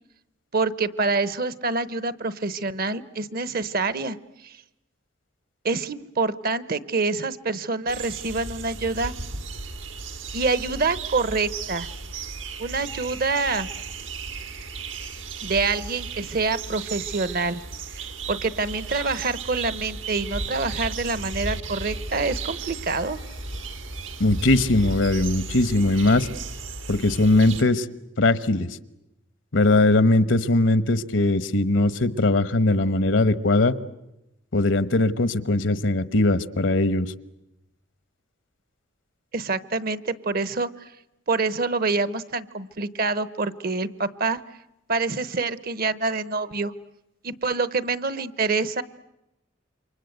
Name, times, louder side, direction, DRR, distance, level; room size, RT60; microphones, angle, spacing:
voice 1, 0.5-4.2 4.4-4.6 5.6-9.1 10.3-11.9 12.6-13.7 15.4-17.6 17.9-23.2 39.3-40.7 41.3-44.4 44.9-46.7 47.2-48.8, right 3 dB, 50° right, 17 dB, 1.0 m, -26 dB
sound 1, 7.9-27.6, right 4 dB, 85° right, 2.0 m, -35 dB
voice 2, 24.2-26.3 26.9-27.9 28.2-28.7 29.5-33.7 34.5-37.1, left 2 dB, 75° left, 16 dB, 1.1 m, -20 dB
28.0 x 24.5 x 8.0 m, 0.90 s
head